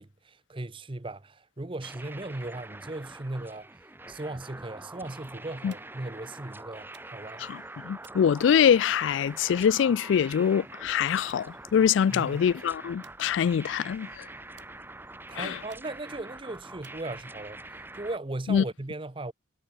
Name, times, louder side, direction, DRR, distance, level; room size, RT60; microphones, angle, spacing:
voice 1, 0.0-3.7 4.1-7.5 12.1-12.4 15.3-17.6 17.9-19.3, right 2 dB, 30° right, 0.8 m, -37 dB
sound 1, 1.8-18.2, right 2 dB, 10° right, 1.9 m, -45 dB
sound 2, 5.7-6.1 6.9-7.4 8.0-9.0 9.8-10.6 11.3-11.5 11.9-12.2 13.0-13.8 14.6-15.2 15.7-16.2 16.8-17.6, right 10 dB, 65° right, 5.5 m, -60 dB
voice 2, 7.4-14.3 15.4-15.6 18.5-18.6, left 8 dB, 75° left, 0.3 m, -24 dB
head